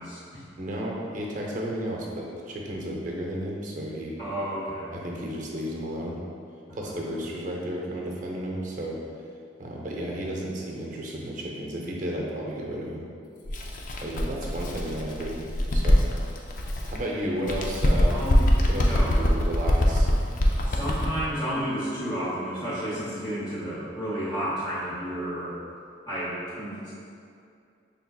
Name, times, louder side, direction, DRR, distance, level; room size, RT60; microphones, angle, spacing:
voice 1, 0.0-0.4 4.2-5.0 6.7-6.9 18.1-19.2 20.4-25.6 26.1-26.9, equal, 25° left, -12 dB, 0.8 m, -32 dB
voice 2, 0.6-4.1 4.9-6.2 6.7-9.0 9.6-13.0 14.0-15.4 15.7-16.0 16.8-18.2 18.7-20.1, equal, 40° right, -2 dB, 0.6 m, -33 dB
Bird, 13.4-17.0 17.4-21.2, equal, 45° left, 0.4 m, -23 dB
5.8 x 3.5 x 2.3 m, 2.4 s
head